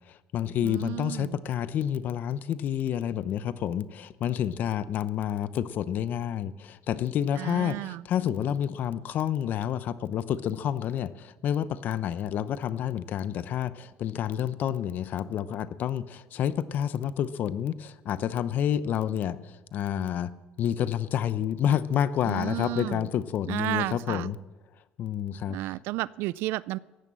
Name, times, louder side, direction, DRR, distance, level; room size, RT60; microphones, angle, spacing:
voice 1, 0.1-20.3 20.6-24.4 25.0-25.7, left 10 dB, 55° left, 15 dB, 0.7 m, -29 dB
voice 2, 0.6-1.4 7.4-8.1 22.2-23.1 23.5-24.3 25.5-26.8, right 19 dB, 80° right, 22 dB, 0.4 m, -32 dB
15.0 x 11.0 x 7.6 m, 1.2 s
cardioid pair, 125°, 4 cm